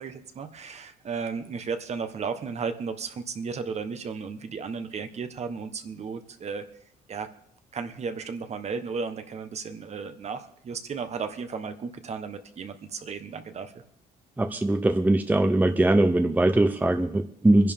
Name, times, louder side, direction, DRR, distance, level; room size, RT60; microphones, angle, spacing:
voice 1, 0.0-6.6 7.1-7.3 7.7-13.7, right 5 dB, 40° right, 9 dB, 1.4 m, -34 dB
voice 2, 14.4-17.7, right 1 dB, 10° right, 7 dB, 0.7 m, -21 dB
23.5 x 11.0 x 3.7 m, 0.69 s
cardioid pair, 110°, 17 cm